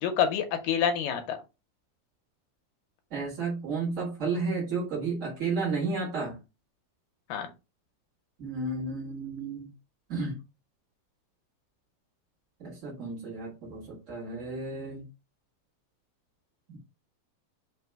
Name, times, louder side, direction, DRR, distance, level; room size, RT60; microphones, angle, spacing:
voice 1, 0.0-1.4 7.3-7.5, left 8 dB, 80° left, 2.4 m, -27 dB
voice 2, 3.1-6.4 8.4-9.7 10.1-10.3 12.6-15.0 16.7-16.8, right 4 dB, 65° right, 0.7 m, -32 dB
5.4 x 2.1 x 4.6 m
omnidirectional pair, 4.0 m